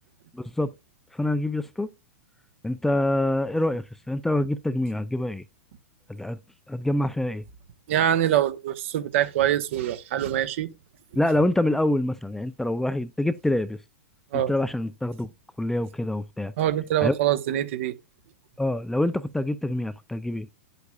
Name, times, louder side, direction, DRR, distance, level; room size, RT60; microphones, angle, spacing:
voice 1, 0.3-0.7 1.1-1.9 2.6-5.4 6.1-6.4 6.7-7.4 11.2-13.8 14.5-15.3 15.6-16.5 17.0-17.2 18.6-20.5, left 1 dB, 5° left, 0.4 m, -26 dB
voice 2, 7.9-10.7 14.3-14.5 16.6-17.9, right 11 dB, 60° right, 1.0 m, -24 dB
8.5 x 8.1 x 2.4 m
hypercardioid pair, 120°, 8 cm